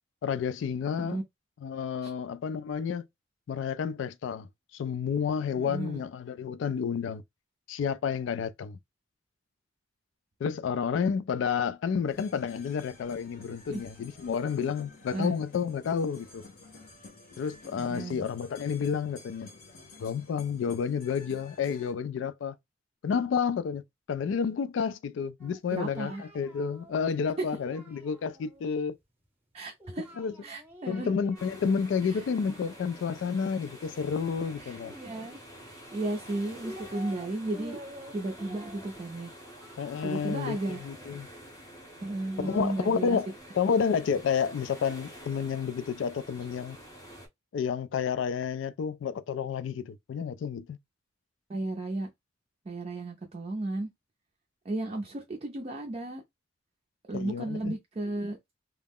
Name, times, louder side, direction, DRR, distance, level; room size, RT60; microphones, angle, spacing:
voice 1, 0.2-1.2 1.6-3.0 3.5-7.2 7.7-8.8 10.4-16.4 17.4-19.5 20.0-22.6 23.0-23.8 24.1-29.0 30.2-30.3 30.9-34.9 39.8-41.3 42.4-46.8 47.5-50.8 57.1-57.7, left 6 dB, 75° left, 0.3 m, -30 dB
voice 2, 5.6-6.1 13.7-13.8 15.1-15.4 17.8-18.3 25.7-26.2 29.5-30.1 30.4-31.1 32.1-32.2 34.6-37.8 38.1-39.3 40.0-40.8 42.0-43.2 51.5-52.1 52.7-53.9 54.7-56.2 57.1-58.4, right 2 dB, 30° right, 0.4 m, -34 dB
sound 1, 12.1-21.9, left 3 dB, 50° left, 0.8 m, -51 dB
Singing, 25.4-28.7 29.8-31.8 32.1-33.3 34.7-35.7 36.3-37.3 37.5-41.2 42.0-44.2, equal, 10° right, 0.8 m, -50 dB
sound 2, 31.3-47.3, equal, 20° left, 0.7 m, -48 dB
2.3 x 2.0 x 3.5 m
head